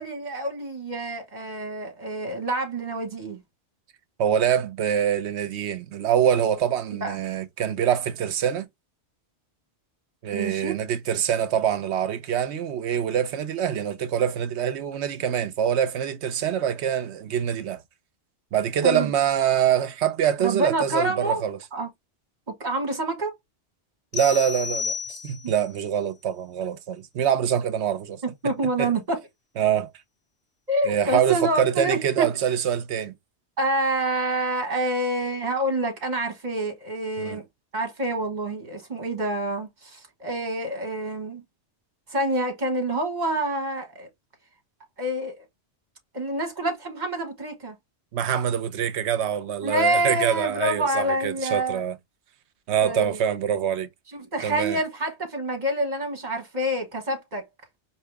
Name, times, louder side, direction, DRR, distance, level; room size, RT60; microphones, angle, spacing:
voice 1, 0.0-3.4 7.0-7.1 10.3-10.8 18.8-19.1 20.4-21.4 21.7-21.9 22.6-23.3 25.4-25.5 28.2-29.2 30.7-32.3 33.6-37.4 37.7-41.4 42.1-44.1 45.0-45.4 46.1-47.7 49.6-51.8 52.8-53.2 54.1-57.4, right 1 dB, 40° right, 1.5 m, -27 dB
voice 2, 4.2-8.7 10.2-17.8 18.5-21.6 24.1-28.2 28.8-28.9 29.6-29.9 30.8-33.1 37.2-37.4 48.1-52.0 52.7-53.9 54.4-54.8, right 9 dB, 75° right, 0.9 m, -25 dB
sound 1, 24.1-25.7, left 6 dB, 60° left, 0.9 m, -31 dB
4.7 x 2.8 x 3.3 m
omnidirectional pair, 1.2 m